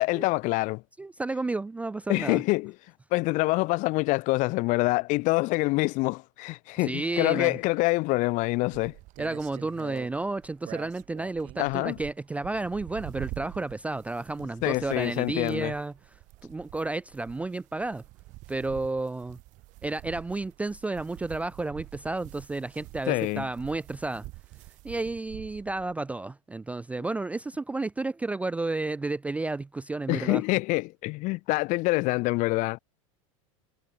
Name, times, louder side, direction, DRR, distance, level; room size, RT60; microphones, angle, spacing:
voice 1, 0.0-0.8 2.1-2.7 3.1-8.9 11.6-12.0 14.6-15.7 23.1-23.5 30.1-32.8, left 23 dB, 50° left, 0.8 m, -26 dB
voice 2, 1.0-2.4 6.8-7.6 9.2-15.9 16.4-18.0 18.5-19.4 19.8-24.3 24.8-30.4, right 2 dB, 10° right, 0.4 m, -32 dB
sound 1, 8.7-25.9, right 20 dB, 50° right, 1.7 m, -46 dB
hypercardioid pair, 105°, 17 cm